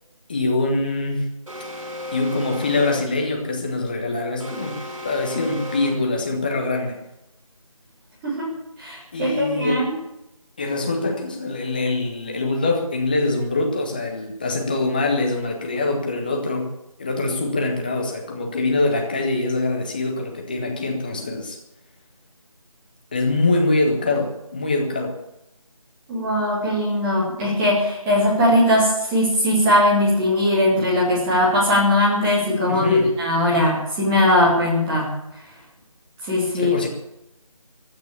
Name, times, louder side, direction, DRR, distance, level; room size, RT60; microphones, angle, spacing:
voice 1, 0.3-1.2 2.1-4.7 5.0-7.0 9.1-9.9 10.6-16.7 17.0-21.6 23.1-25.2 32.7-33.1 36.5-36.9, left 2 dB, 15° left, 2 dB, 1.4 m, -23 dB
Alarm, 1.5-3.2 4.4-6.2, left 1 dB, 65° right, 5.8 m, -35 dB
voice 2, 8.8-9.9 26.1-35.1 36.2-36.7, left 1 dB, 5° right, -5 dB, 2.1 m, -19 dB
15.5 x 10.5 x 8.5 m, 0.87 s
figure-of-eight pair, 165°, 18 cm